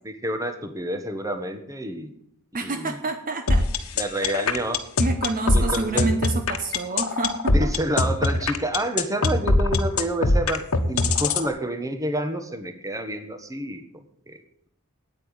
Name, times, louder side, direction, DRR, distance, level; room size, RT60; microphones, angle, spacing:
voice 1, 0.2-2.1 2.6-3.0 4.0-4.8 5.5-6.1 7.5-10.6 10.9-13.8 14.3-14.4, right 1 dB, 15° right, 8 dB, 1.3 m, -28 dB
voice 2, 2.5-3.6 5.0-7.7, right 2 dB, 40° right, 7 dB, 0.9 m, -28 dB
sound 1, 3.5-11.5, left 3 dB, 65° left, 1.2 m, -21 dB
9.2 x 8.9 x 8.7 m, 0.69 s
head